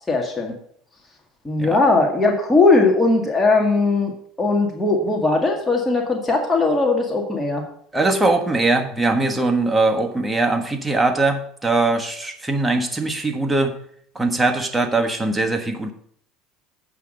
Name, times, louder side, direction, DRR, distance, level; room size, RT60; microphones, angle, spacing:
voice 1, 0.1-0.5 1.5-4.1 4.4-7.6, left 3 dB, 15° left, 0 dB, 1.9 m, -19 dB
voice 2, 7.9-13.7 14.1-15.9, right 2 dB, 10° right, 4 dB, 1.4 m, -21 dB
8.2 x 5.9 x 6.4 m, 0.63 s
supercardioid pair, 100°, 0 cm